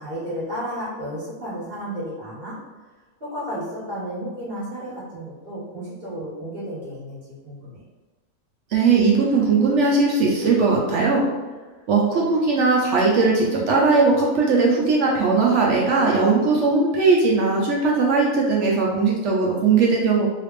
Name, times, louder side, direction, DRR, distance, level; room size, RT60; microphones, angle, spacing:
voice 1, 0.0-2.6 3.2-7.8, equal, 35° right, -10 dB, 1.6 m, -32 dB
voice 2, 8.7-11.2 11.9-20.3, right 4 dB, 65° right, -2 dB, 0.8 m, -19 dB
3.3 x 2.8 x 3.0 m, 1.3 s
omnidirectional pair, 1.6 m